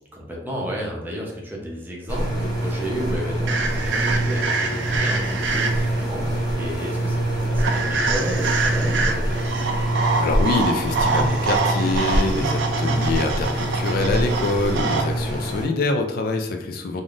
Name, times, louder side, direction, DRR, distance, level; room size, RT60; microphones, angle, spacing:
voice 1, 0.1-9.6, equal, 10° right, -3 dB, 0.7 m, -32 dB
sound 1, 2.1-15.6, right 1 dB, 25° left, 1.2 m, -25 dB
sound 2, 3.5-6.0 7.6-15.0, right 4 dB, 70° right, 0.4 m, -26 dB
voice 2, 10.2-17.0, left 3 dB, 55° left, 4 dB, 0.3 m, -25 dB
3.4 x 2.5 x 2.4 m, 0.90 s
head